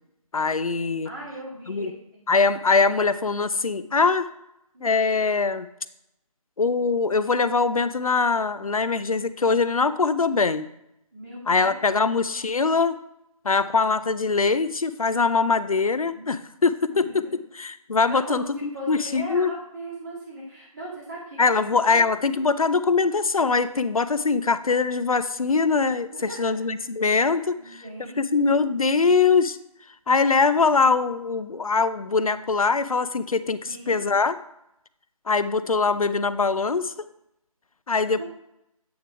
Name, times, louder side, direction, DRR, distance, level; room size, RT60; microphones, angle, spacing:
voice 1, 0.3-1.1 1.7-1.9 2.3-4.3 4.8-5.7 6.6-10.7 11.5-13.0 13.4-19.5 21.4-27.8 28.2-29.6 30.1-33.6 33.9-34.4 35.3-36.9 37.9-38.2, left 4 dB, 70° left, 14 dB, 0.5 m, -22 dB
voice 2, 1.0-2.2 4.7-5.2 11.1-12.1 16.1-16.4 16.9-17.3 18.1-18.5 18.7-22.0 26.1-26.6 27.6-28.6 33.7-34.1 35.8-35.9 38.1-38.2, right 1 dB, 35° right, -9 dB, 2.0 m, -39 dB
8.6 x 3.7 x 4.6 m, 0.82 s
figure-of-eight pair, 165°, 19 cm